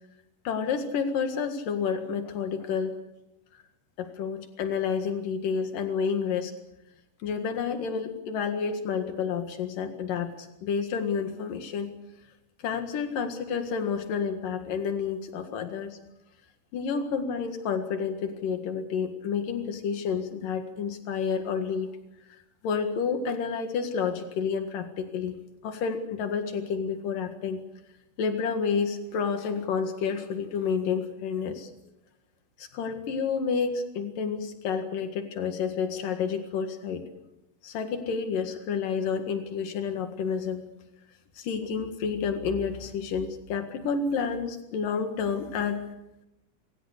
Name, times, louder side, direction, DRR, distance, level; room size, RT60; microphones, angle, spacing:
voice 1, 0.5-3.0 4.0-6.5 7.2-11.9 12.6-16.0 16.7-21.9 22.6-27.6 28.2-31.7 32.6-37.1 37.6-40.7 41.4-45.8, left 6 dB, 90° left, 7 dB, 3.5 m, -30 dB
25.5 x 25.0 x 6.7 m, 0.90 s
omnidirectional pair, 3.7 m